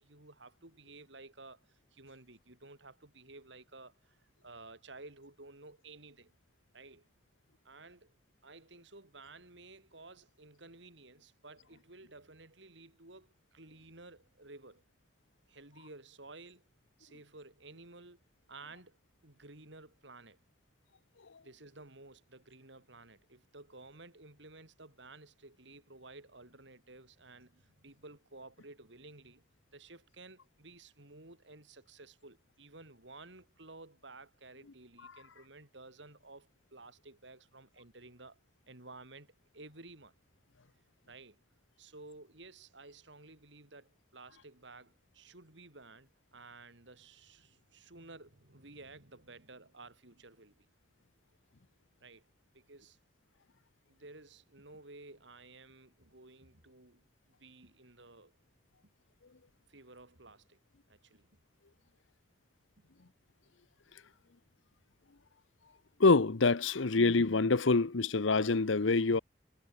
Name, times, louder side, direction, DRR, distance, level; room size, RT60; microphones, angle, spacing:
voice 1, 0.0-6.3 6.7-7.1 7.6-8.1 8.4-14.8 15.5-16.7 17.0-18.2 18.5-19.0 19.2-20.4 21.4-29.4 29.7-38.4 38.7-40.1 41.1-41.4 41.8-50.6 52.0-52.3 52.5-53.0 53.9-58.4 58.8-58.9 59.7-60.6 60.9-61.3 62.8-62.9, right 3 dB, 75° right, 3.8 m, -54 dB
voice 2, 66.0-69.2, left 3 dB, 85° left, 0.9 m, -26 dB
head